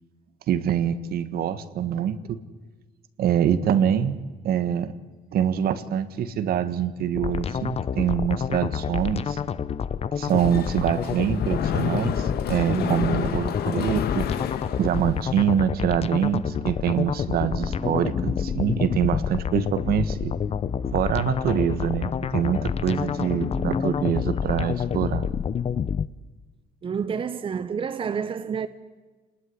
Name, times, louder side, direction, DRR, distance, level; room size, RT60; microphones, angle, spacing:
voice 1, 0.5-2.4 3.2-4.2 4.4-4.9 5.3-9.4 10.2-14.3 14.8-20.3 20.9-25.3, right 9 dB, 65° right, 1.5 m, -25 dB
sound 1, 7.1-26.1, left 7 dB, 35° left, 0.7 m, -28 dB
Mechanisms, 10.2-15.4, left 9 dB, 70° left, 1.7 m, -31 dB
voice 2, 12.7-13.2 26.8-28.7, right 6 dB, 30° right, 0.9 m, -29 dB
sound 2, 16.5-25.5, left 4 dB, 20° left, 1.3 m, -37 dB
29.0 x 20.0 x 9.7 m
cardioid pair, 110°, 17 cm